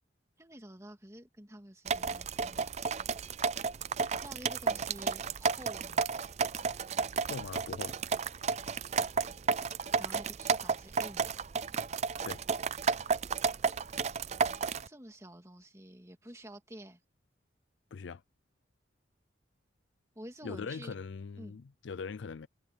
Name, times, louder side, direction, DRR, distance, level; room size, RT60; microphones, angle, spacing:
voice 1, 0.4-2.7 4.2-6.1 10.0-11.4 14.8-17.0 20.2-20.9 21.4-21.6, right 1 dB, 15° right, 2.6 m, -49 dB
sound 1, 1.9-14.9, right 5 dB, 35° right, 0.4 m, -32 dB
voice 2, 7.2-8.0 12.2-12.4 17.9-18.2 20.4-22.5, left 5 dB, 70° left, 0.4 m, -41 dB
head